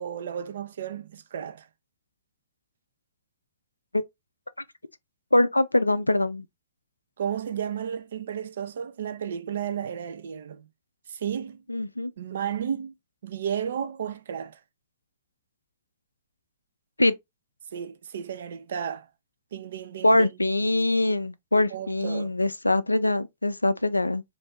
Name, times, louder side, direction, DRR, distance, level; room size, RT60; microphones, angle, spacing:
voice 1, 0.0-1.7 7.2-10.7 11.1-11.6 12.2-12.9 13.2-14.6 17.7-19.1 19.5-20.4 21.7-22.3, right 8 dB, 65° right, 0.5 m, -33 dB
voice 2, 5.3-6.4 11.7-12.1 17.0-17.1 20.0-24.2, left 1 dB, 90° left, 0.4 m, -23 dB
3.0 x 2.6 x 3.6 m
figure-of-eight pair, 110°, 0 cm